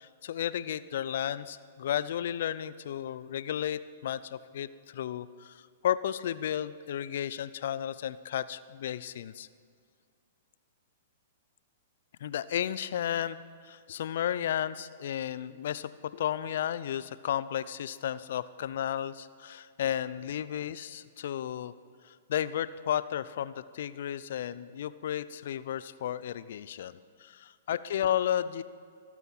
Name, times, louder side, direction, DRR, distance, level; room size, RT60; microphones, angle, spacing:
voice 1, 0.0-9.5 12.2-13.4 13.6-21.7 22.0-28.6, left 10 dB, 60° left, 16 dB, 0.5 m, -33 dB
18.0 x 9.2 x 6.1 m, 2.2 s
hypercardioid pair, 115°, 0 cm